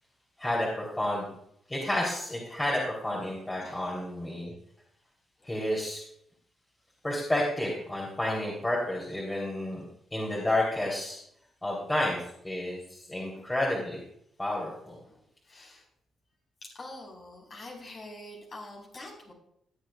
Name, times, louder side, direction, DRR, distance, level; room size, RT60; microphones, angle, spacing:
voice 1, 0.4-1.3 1.7-4.5 5.4-6.0 7.0-9.8 10.1-11.2 11.6-14.0 14.4-15.0, left 1 dB, 20° left, -4 dB, 3.4 m, -30 dB
voice 2, 3.6-4.1 5.4-5.7 9.3-9.4 13.3-13.4 15.0-15.8 16.6-19.3, left 2 dB, 50° left, -2 dB, 4.5 m, -46 dB
20.5 x 7.8 x 2.4 m, 0.72 s
hypercardioid pair, 45°, 0 cm